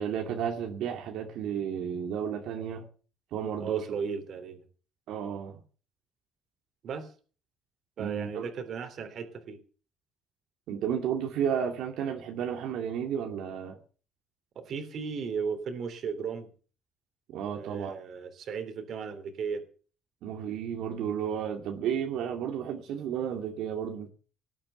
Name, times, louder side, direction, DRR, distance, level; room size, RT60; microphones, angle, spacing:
voice 1, 0.0-2.9 3.3-3.9 5.1-5.6 8.0-8.5 10.7-13.8 17.3-18.0 20.2-24.1, right 8 dB, 65° right, 2.4 m, -32 dB
voice 2, 3.6-4.6 6.8-7.1 8.0-9.6 14.5-16.5 17.5-19.6, right 6 dB, 45° right, 3.2 m, -35 dB
19.5 x 8.8 x 7.9 m
cardioid pair, 165°, 0 cm